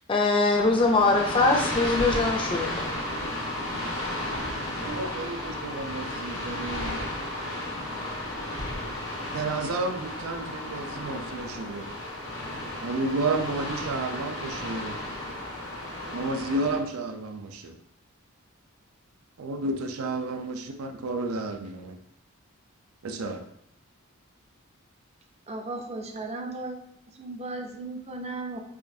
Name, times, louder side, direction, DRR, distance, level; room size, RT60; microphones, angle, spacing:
voice 1, 0.1-2.9, left 3 dB, 25° left, 2 dB, 0.5 m, -22 dB
sound 1, 0.5-16.8, left 1 dB, 85° left, 1.2 m, -33 dB
voice 2, 4.8-7.0 9.3-11.9 12.8-15.0 16.1-17.8 19.4-22.0 23.0-23.4, right 2 dB, 85° right, 5 dB, 0.5 m, -31 dB
voice 3, 25.5-26.8 27.2-28.6, right 2 dB, 30° right, 4 dB, 0.4 m, -35 dB
4.9 x 2.4 x 2.7 m, 0.73 s
head